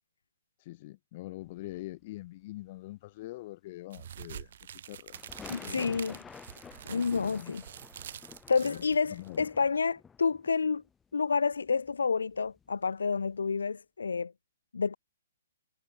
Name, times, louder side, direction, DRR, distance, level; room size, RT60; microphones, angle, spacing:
voice 1, 0.6-5.2 5.6-5.9 6.9-7.6 8.6-9.4, left 18 dB, 35° left, 5.2 m, -44 dB
sound 1, 1.4-2.1 5.1-12.9 13.2-13.4, left 6 dB, 10° left, 5.2 m, -51 dB
sound 2, 3.9-9.4, right 9 dB, 50° right, 3.7 m, -46 dB
voice 2, 5.5-6.2 6.9-7.6 8.5-10.8 11.1-14.3 14.7-15.0, left 5 dB, 65° left, 2.4 m, -29 dB
figure-of-eight pair, 120°, 0 cm